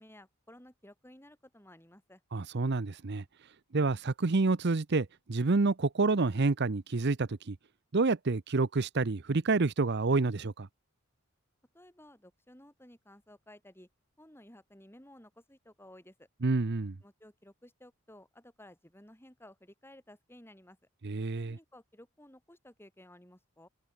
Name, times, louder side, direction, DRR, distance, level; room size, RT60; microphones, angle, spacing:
voice 1, 0.0-2.2 11.7-13.9 14.2-16.3 17.0-20.8 21.5-23.7, left 1 dB, 10° left, 7.9 m, -55 dB
voice 2, 2.3-3.2 3.7-7.6 7.9-10.7 16.4-17.0 21.0-21.6, right 3 dB, 55° right, 0.7 m, -28 dB
head